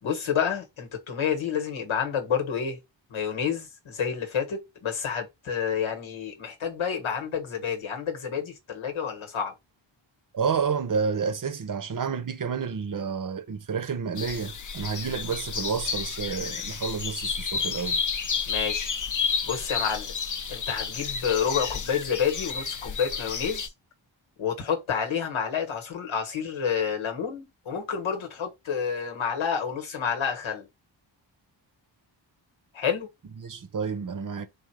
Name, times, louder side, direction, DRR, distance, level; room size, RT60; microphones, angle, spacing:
voice 1, 0.0-2.8 3.1-9.5 18.5-19.0 19.5-20.1 20.5-23.6 24.4-30.7 32.7-33.1, left 7 dB, 90° left, 1.3 m, -29 dB
voice 2, 10.3-18.0 33.4-34.5, right 6 dB, 45° right, 0.7 m, -30 dB
sound 1, 14.2-23.7, left 6 dB, 40° left, 0.6 m, -31 dB
3.7 x 2.4 x 4.5 m
wide cardioid pair, 120°, 46 cm